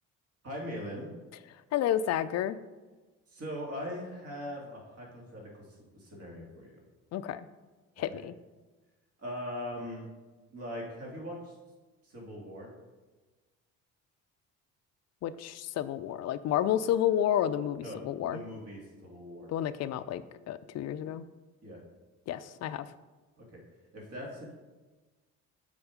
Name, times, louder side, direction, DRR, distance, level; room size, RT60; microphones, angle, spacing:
voice 1, 0.4-1.1 3.3-6.8 8.0-8.2 9.2-10.1 10.5-11.6 12.0-12.7 17.8-19.5 21.6-21.8 23.4-23.6 23.9-24.5, equal, 50° right, -2 dB, 2.6 m, -41 dB
voice 2, 1.7-2.6 7.1-7.5 8.0-8.4 15.2-18.4 19.5-21.2 22.3-22.9, left 11 dB, 55° left, 13 dB, 0.5 m, -30 dB
7.1 x 4.6 x 5.1 m, 1.3 s
cardioid pair, 95°, 31 cm